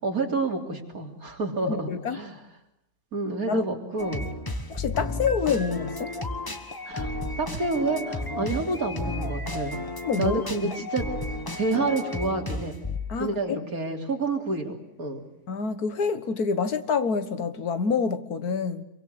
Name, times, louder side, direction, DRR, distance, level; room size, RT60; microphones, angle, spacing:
voice 1, 0.0-2.4 3.1-4.3 6.9-9.8 10.2-11.1 11.6-12.8 13.2-14.7 15.0-15.3, right 3 dB, 65° right, 2 dB, 3.8 m, -29 dB
voice 2, 1.7-2.2 3.5-3.7 4.7-6.1 8.4-8.5 10.0-10.8 13.1-13.6 15.5-18.8, left 5 dB, 75° left, 11 dB, 1.9 m, -27 dB
sound 1, 4.0-13.2, left 2 dB, 15° left, 1.3 m, -33 dB
27.0 x 24.0 x 7.9 m, 0.81 s
omnidirectional pair, 1.6 m